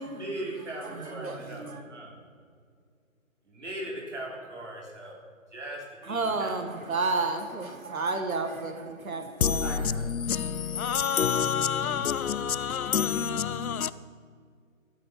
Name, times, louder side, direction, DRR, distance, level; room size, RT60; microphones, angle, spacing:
voice 1, 0.0-2.2 3.5-5.2 5.5-7.9 9.6-10.7, right 1 dB, 55° right, 3.8 m, -40 dB
voice 2, 1.2-1.8 6.1-9.8, right 3 dB, 80° right, 1.6 m, -31 dB
voice 3, 9.4-13.9, left 7 dB, 85° left, 0.7 m, -27 dB
14.5 x 7.8 x 5.8 m
hypercardioid pair, 175°, 41 cm